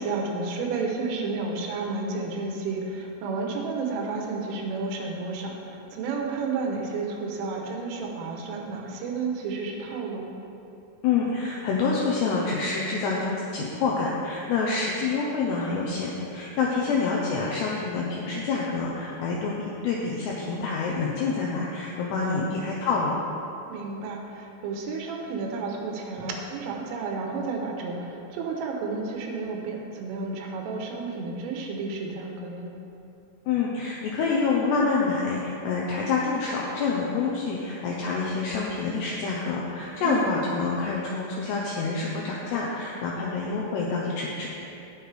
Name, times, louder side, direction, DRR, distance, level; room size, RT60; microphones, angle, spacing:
voice 1, 0.0-10.3 16.6-17.0 22.2-22.5 23.7-32.7 40.0-40.3, right 4 dB, 80° right, 1 dB, 3.6 m, -31 dB
voice 2, 11.0-23.1 33.5-44.5, left 4 dB, 85° left, -3 dB, 2.4 m, -27 dB
19.0 x 6.4 x 3.4 m, 2.8 s
omnidirectional pair, 5.8 m